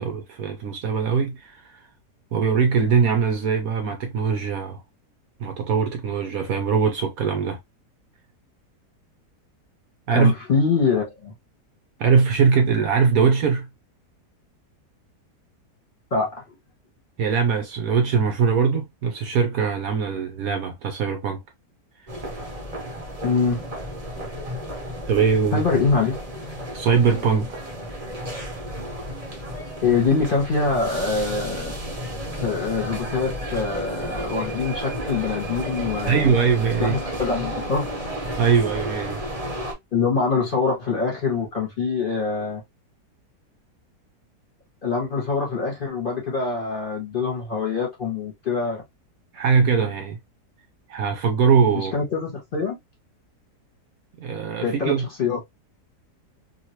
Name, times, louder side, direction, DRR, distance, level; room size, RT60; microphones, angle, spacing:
voice 1, 0.0-1.8 2.3-4.8 5.4-7.6 10.1-10.3 12.0-13.7 17.2-21.4 25.1-25.6 26.7-27.6 36.1-36.9 38.4-39.2 49.3-50.2 50.9-51.9 54.2-55.0, right 6 dB, 70° right, 1.0 m, -21 dB
voice 2, 10.1-11.3 16.1-16.4 23.2-23.6 25.5-26.2 29.8-31.7 32.4-36.3 36.8-37.9 39.9-42.6 44.8-48.8 51.7-52.8 54.6-54.9 55.2-55.4, left 4 dB, 35° left, 1.4 m, -24 dB
sound 1, 22.1-39.7, equal, 25° right, 1.0 m, -32 dB
3.0 x 2.7 x 2.8 m
omnidirectional pair, 1.8 m